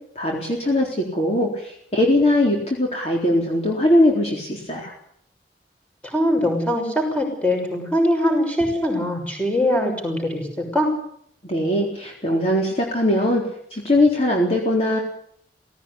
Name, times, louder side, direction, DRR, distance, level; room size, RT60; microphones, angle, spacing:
voice 1, 0.2-1.6 1.9-4.9 11.4-13.4 13.7-15.0, left 1 dB, 35° left, -1 dB, 3.9 m, -20 dB
voice 2, 6.0-10.5 10.7-10.9, left 1 dB, 10° left, 1 dB, 6.4 m, -22 dB
18.0 x 17.5 x 9.9 m, 0.67 s
head